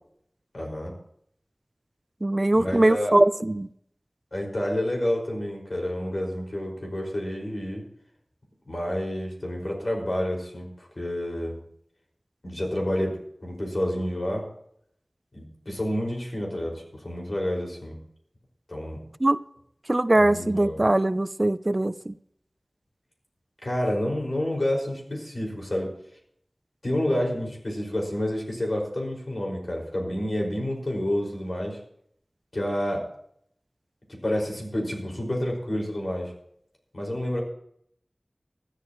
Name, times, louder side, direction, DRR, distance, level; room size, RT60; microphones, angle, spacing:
voice 1, 0.5-0.9 2.5-3.1 4.3-7.8 8.7-11.6 12.4-14.4 15.3-18.0 18.7-19.0 20.1-20.8 23.6-25.9 26.8-31.8 32.5-33.0 34.2-36.3 36.9-37.4, left 1 dB, 60° left, -1 dB, 5.5 m, -29 dB
voice 2, 2.2-3.7 19.2-19.4 19.9-22.1, right 1 dB, 35° right, 14 dB, 0.5 m, -21 dB
20.0 x 13.5 x 3.1 m, 0.70 s
wide cardioid pair, 50°, 0 cm